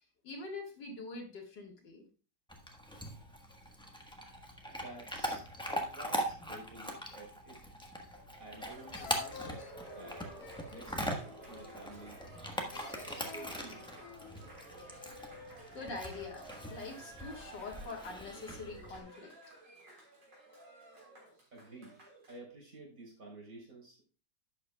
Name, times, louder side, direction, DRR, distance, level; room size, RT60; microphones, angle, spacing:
voice 1, 0.2-2.0 15.7-19.3, left 3 dB, 80° left, -1 dB, 2.5 m, -44 dB
Chewing mastication / Dog, 2.5-19.0, equal, 5° left, 1.0 m, -41 dB
voice 2, 4.7-7.6 8.4-10.3 10.7-12.2 13.0-13.9 21.5-24.1, right 2 dB, 50° right, -1 dB, 4.1 m, -51 dB
sound 1, 8.1-8.6 8.9-12.0 12.7-14.5, left 8 dB, 65° left, 1.4 m, -51 dB
Cheering, 8.5-22.4, right 1 dB, 85° right, 4.3 m, -52 dB
11.5 x 8.4 x 2.3 m, 0.34 s
omnidirectional pair, 1.9 m